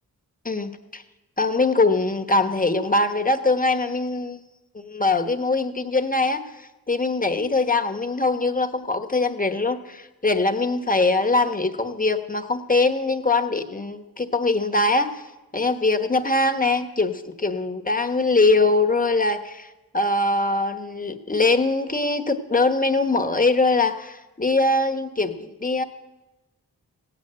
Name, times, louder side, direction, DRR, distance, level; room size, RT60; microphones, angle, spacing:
voice 1, 0.4-1.0 1.4-4.4 4.7-15.2 15.5-25.8, left 3 dB, 20° left, 8 dB, 1.3 m, -22 dB
16.5 x 9.0 x 7.8 m, 1.1 s
cardioid pair, 45°, 38 cm